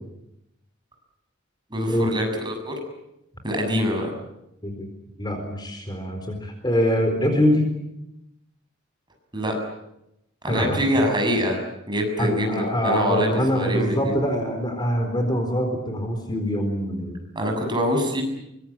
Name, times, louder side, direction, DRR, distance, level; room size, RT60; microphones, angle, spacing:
voice 1, 1.7-2.7 3.4-4.1 9.3-9.5 10.4-11.6 11.9-14.2 17.4-18.2, equal, 25° right, 3 dB, 7.3 m, -24 dB
voice 2, 5.2-7.7 10.5-10.9 12.2-17.2, equal, 20° left, 5 dB, 4.2 m, -24 dB
24.5 x 23.5 x 8.8 m, 0.85 s
head